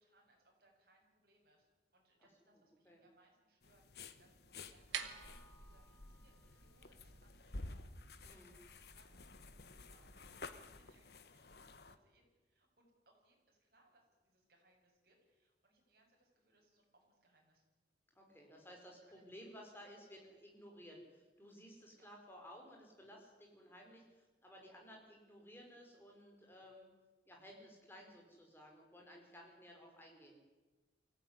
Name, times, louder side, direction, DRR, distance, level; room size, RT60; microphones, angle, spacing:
voice 1, 0.0-11.5 11.8-17.6 19.0-19.8 22.0-22.1, right 2 dB, 55° right, 0 dB, 7.4 m, -73 dB
sound 1, 3.6-12.0, left 3 dB, 60° left, 1.3 m, -53 dB
sound 2, 4.6-10.6, right 7 dB, 80° right, 2.0 m, -52 dB
voice 2, 18.2-26.9 27.3-30.4, equal, 10° left, 0 dB, 5.3 m, -57 dB
24.0 x 16.5 x 9.8 m, 1.2 s
head